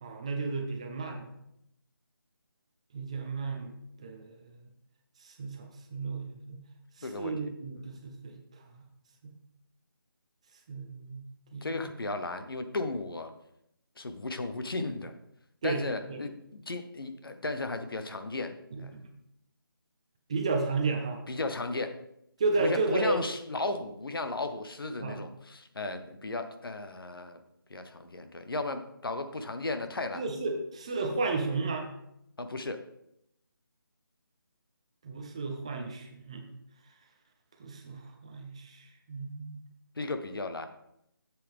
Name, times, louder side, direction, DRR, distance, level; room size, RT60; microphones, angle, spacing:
voice 1, 0.0-1.2 2.9-3.7 4.0-4.4 5.2-6.6 7.0-8.4 10.7-11.2 11.5-11.9 15.6-15.8 16.1-16.2 18.7-18.9 20.3-21.2 22.4-23.2 25.0-25.2 30.1-31.9 35.0-36.4 37.6-39.6, right 3 dB, 15° right, 3 dB, 0.5 m, -33 dB
voice 2, 7.0-7.5 7.7-7.9 11.6-13.3 14.0-15.1 15.6-18.5 18.8-18.9 21.3-22.0 22.6-27.4 27.7-30.2 32.4-32.8 40.0-40.7, left 2 dB, 70° left, 8 dB, 1.1 m, -35 dB
8.6 x 7.5 x 3.6 m, 0.79 s
figure-of-eight pair, 170°, 12 cm